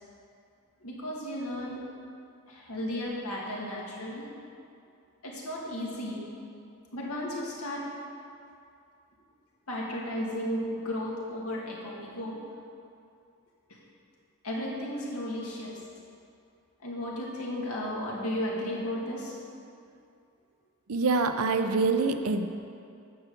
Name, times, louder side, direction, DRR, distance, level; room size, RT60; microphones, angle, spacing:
voice 1, 0.8-1.8 2.5-4.3 5.2-6.2 6.9-7.8 9.7-12.4 14.4-15.8 16.8-19.3, left 1 dB, 80° left, -4 dB, 2.2 m, -34 dB
voice 2, 20.9-22.5, right 3 dB, 75° right, 7 dB, 0.6 m, -25 dB
9.5 x 5.8 x 7.0 m, 2.5 s
head